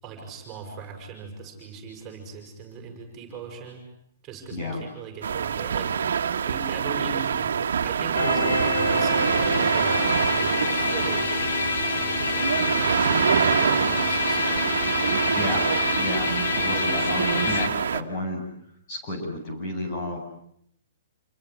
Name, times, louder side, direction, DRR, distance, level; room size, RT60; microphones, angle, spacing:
voice 1, 0.0-3.8 4.2-5.9 6.2-7.5 7.8-14.7, right 5 dB, 15° right, 4 dB, 6.9 m, -39 dB
voice 2, 4.5-4.8 15.3-15.7 16.0-18.4 18.9-20.2, left 1 dB, 30° left, 3 dB, 8.0 m, -31 dB
sound 1, 5.2-18.0, right 7 dB, 80° right, 1.7 m, -25 dB
sound 2, 8.1-17.7, left 4 dB, 80° left, 4.7 m, -27 dB
28.5 x 21.5 x 9.7 m, 0.70 s
hypercardioid pair, 165°, 0 cm